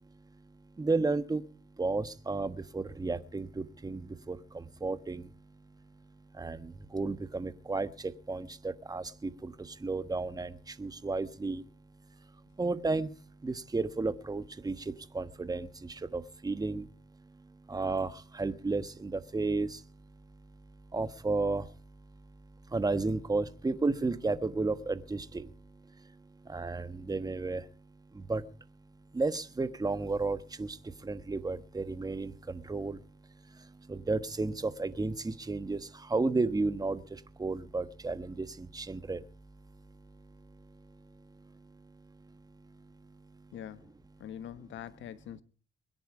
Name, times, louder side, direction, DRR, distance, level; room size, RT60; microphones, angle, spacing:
voice 1, 0.8-1.4 1.8-4.0 4.3-4.4 4.8-5.2 6.4-6.6 6.9-7.9 8.3-9.5 9.8-10.5 10.8-11.6 12.6-13.1 13.4-14.7 15.1-15.7 16.1-16.8 17.7-18.1 18.4-19.7 20.9-21.6 22.7-25.2 26.5-27.6 28.3-28.4 29.1-30.7 31.0-32.3 32.7-33.0 33.9-35.8 36.1-37.0 37.4-38.5 38.7-39.2, right 3 dB, 20° right, 1.2 m, -32 dB
voice 2, 43.5-43.9 44.2-45.4, left 10 dB, 75° left, 1.3 m, -43 dB
22.0 x 10.5 x 4.9 m
cardioid pair, 90°, 20 cm